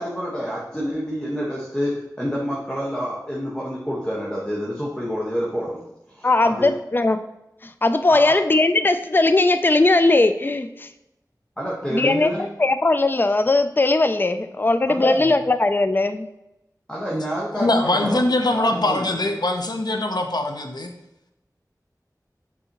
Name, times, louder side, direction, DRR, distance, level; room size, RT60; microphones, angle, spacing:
voice 1, 0.0-5.8 6.1-6.7 8.1-8.3 11.6-12.5 14.9-15.4 16.9-19.3, equal, 10° left, -5 dB, 1.3 m, -28 dB
voice 2, 6.2-7.2 7.6-10.9 11.9-12.3 12.6-16.3, left 2 dB, 30° left, 10 dB, 0.4 m, -19 dB
voice 3, 17.5-20.9, left 2 dB, 70° left, 5 dB, 0.7 m, -22 dB
6.9 x 4.7 x 2.9 m, 0.90 s
wide cardioid pair, 45°, 7 cm